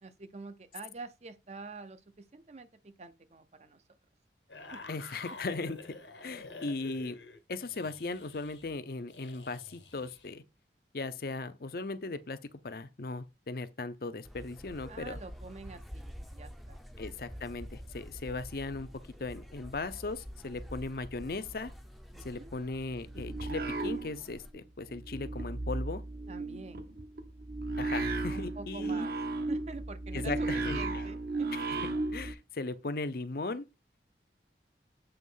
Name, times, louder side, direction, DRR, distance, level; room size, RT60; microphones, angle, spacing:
voice 1, 0.0-3.8 4.7-4.8 14.9-16.8 22.1-22.5 26.3-26.9 28.3-31.5, right 3 dB, 40° right, 0.6 m, -46 dB
sound 1, 4.5-10.3, left 2 dB, 85° left, 1.4 m, -48 dB
voice 2, 4.9-5.9 6.2-7.2 7.5-10.4 10.9-12.4 12.6-15.2 17.0-18.9 19.2-21.7 22.2-26.0 27.8-29.1 30.1-30.8 31.5-31.8 32.1-33.7, left 3 dB, 55° left, 0.6 m, -38 dB
sound 2, 14.2-24.5, equal, ahead, 0.6 m, -47 dB
sound 3, 23.0-24.6 24.9-32.3, right 2 dB, 55° right, 1.1 m, -35 dB
7.8 x 3.1 x 5.5 m
head